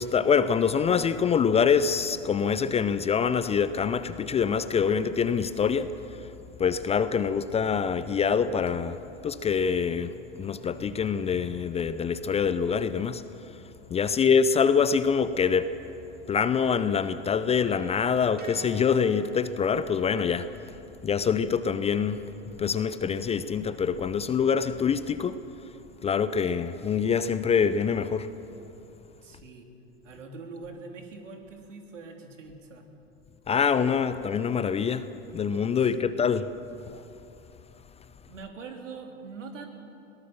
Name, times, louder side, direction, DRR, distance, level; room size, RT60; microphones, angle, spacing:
voice 1, 0.0-6.3 6.6-13.2 13.9-15.7 16.3-20.5 21.0-22.2 22.6-25.4 26.0-28.3 33.5-35.1 35.3-36.5 36.9-37.0, left 6 dB, 15° left, 0.6 m, -25 dB
sound 1, 15.4-16.5 16.8-20.4, right 2 dB, 25° right, 2.6 m, -50 dB
voice 2, 29.2-29.7 30.0-32.9 35.8-36.3 38.2-39.7, right 4 dB, 75° right, 3.3 m, -43 dB
22.0 x 17.5 x 7.3 m
hypercardioid pair, 100°, 37 cm